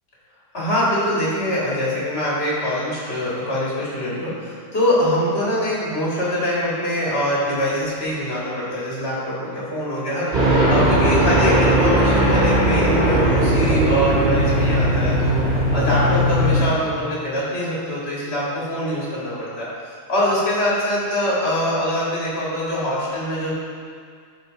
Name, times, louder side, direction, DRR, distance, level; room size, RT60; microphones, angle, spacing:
voice 1, 0.5-15.4 15.7-19.7 20.1-23.5, equal, 40° left, -7 dB, 2.2 m, -23 dB
sound 1, 10.3-16.6, right 1 dB, 45° right, 2.1 m, -18 dB
12.0 x 4.2 x 3.9 m, 2.1 s
omnidirectional pair, 1.6 m